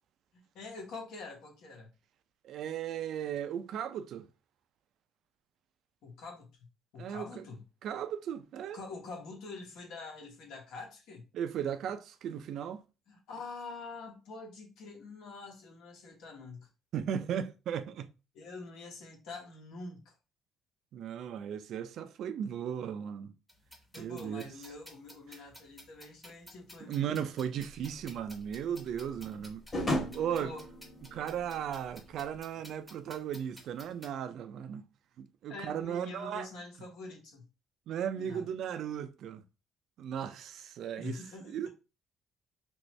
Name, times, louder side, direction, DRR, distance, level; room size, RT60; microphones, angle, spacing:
voice 1, 0.3-1.9 6.0-6.7 6.9-7.6 8.7-11.2 13.1-16.7 18.3-20.1 23.9-27.1 29.8-30.7 35.5-37.5 38.1-38.5 41.0-41.7, left 3 dB, 70° left, 1.1 m, -46 dB
voice 2, 2.4-4.3 7.0-7.4 7.8-8.8 11.3-12.8 16.9-18.1 20.9-23.3 24.0-24.4 26.9-29.6 30.1-30.5 31.1-34.8 35.2-36.5 37.9-39.4 40.0-41.2 41.5-41.7, right 9 dB, 55° right, 0.3 m, -36 dB
sound 1, 23.5-34.1, left 1 dB, 5° left, 0.8 m, -55 dB
sound 2, 27.7-32.4, left 1 dB, 20° left, 1.2 m, -37 dB
3.0 x 2.6 x 3.1 m
cardioid pair, 165°, 0 cm